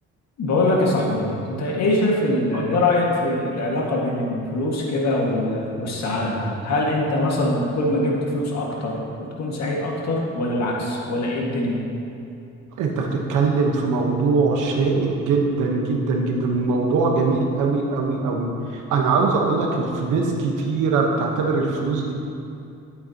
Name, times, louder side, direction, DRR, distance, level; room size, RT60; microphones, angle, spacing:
voice 1, 0.4-11.8, left 1 dB, 60° left, -2 dB, 1.9 m, -23 dB
voice 2, 12.8-22.1, right 4 dB, 90° right, 1 dB, 1.2 m, -22 dB
12.0 x 8.2 x 2.9 m, 2.6 s
cardioid pair, 90°, 30 cm